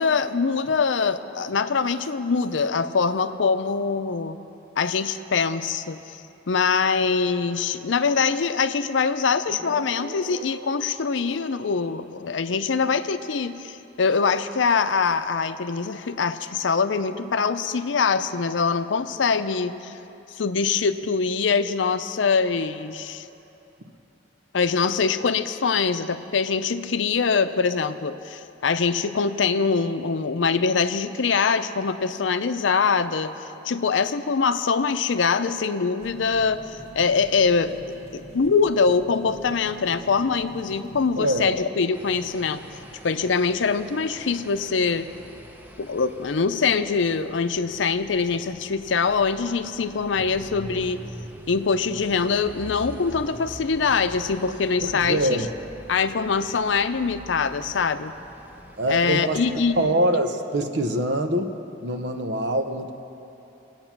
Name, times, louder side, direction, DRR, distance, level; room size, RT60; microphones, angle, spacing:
voice 1, 0.0-4.4 4.8-6.0 6.5-20.0 20.4-23.2 24.5-33.3 33.6-37.8 38.1-42.6 43.0-45.1 45.8-51.0 51.5-55.4 55.9-58.1 58.9-60.0, left 5 dB, 85° left, 11 dB, 0.6 m, -23 dB
Guitar, 9.5-12.9, equal, 50° right, 1.2 m, -44 dB
sound 1, 36.0-41.7, right 1 dB, 35° right, 1.6 m, -45 dB
voice 2, 41.2-41.5 54.8-55.5 58.8-59.4 59.8-61.5 61.8-62.9, right 1 dB, 70° right, 7 dB, 0.9 m, -24 dB
sound 2, 41.9-59.9, right 1 dB, 10° right, 0.8 m, -44 dB
22.5 x 8.8 x 6.0 m, 2.9 s
head